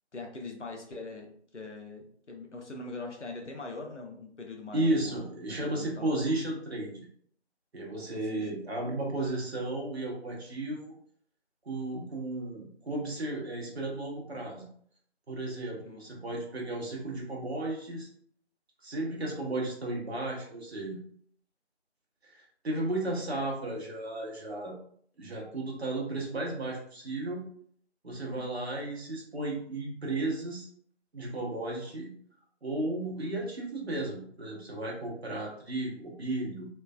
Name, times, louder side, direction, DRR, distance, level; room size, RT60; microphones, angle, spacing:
voice 1, 0.1-5.2 5.6-6.2 8.1-8.5 15.8-16.0 28.3-28.6, left 3 dB, 90° left, 1 dB, 0.8 m, -42 dB
voice 2, 4.7-7.0 7.7-10.9 11.6-14.7 15.3-18.1 18.8-21.0 22.2-24.7 25.2-27.4 28.0-30.7 31.1-32.1 32.6-36.7, right 2 dB, 65° right, -2 dB, 0.8 m, -34 dB
3.1 x 2.2 x 2.2 m, 0.62 s
figure-of-eight pair, 165°, 34 cm